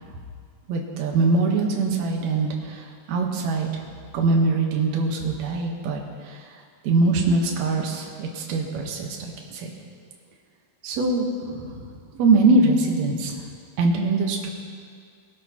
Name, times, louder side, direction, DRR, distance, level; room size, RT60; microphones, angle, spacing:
voice 1, 0.7-3.7 4.1-6.4 6.8-9.7 10.8-11.9 12.2-13.3 13.8-14.5, right 3 dB, 60° right, 0 dB, 2.2 m, -23 dB
20.5 x 12.0 x 3.0 m, 2.1 s
omnidirectional pair, 4.3 m